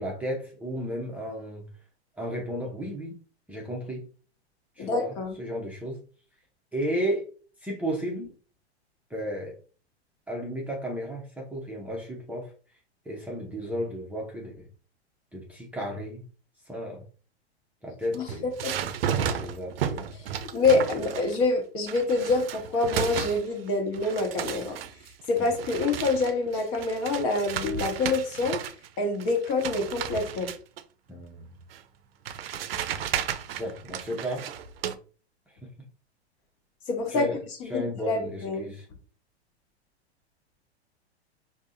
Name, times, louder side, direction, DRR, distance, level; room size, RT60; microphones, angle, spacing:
voice 1, 0.0-1.7 2.2-3.2 3.5-4.1 4.8-6.0 6.7-7.3 7.6-8.3 9.1-9.5 10.3-12.5 13.1-14.7 15.3-16.2 16.7-17.0 17.8-18.5 19.4-20.1 25.4-25.5 31.1-31.5 33.6-34.5 37.1-37.4 37.7-38.8, equal, 5° right, -3 dB, 0.7 m, -33 dB
voice 2, 4.8-5.4 18.1-18.7 20.5-24.8 25.3-28.6 29.0-30.5 36.9-37.3 37.6-38.7, left 3 dB, 40° left, 2 dB, 1.6 m, -26 dB
sound 1, 18.0-21.5 21.9-23.7 23.9-28.9 29.2-30.8 31.7-31.8 32.3-34.9, right 8 dB, 60° right, 0.6 m, -33 dB
4.7 x 2.8 x 2.6 m, 0.39 s
figure-of-eight pair, 100°, 33 cm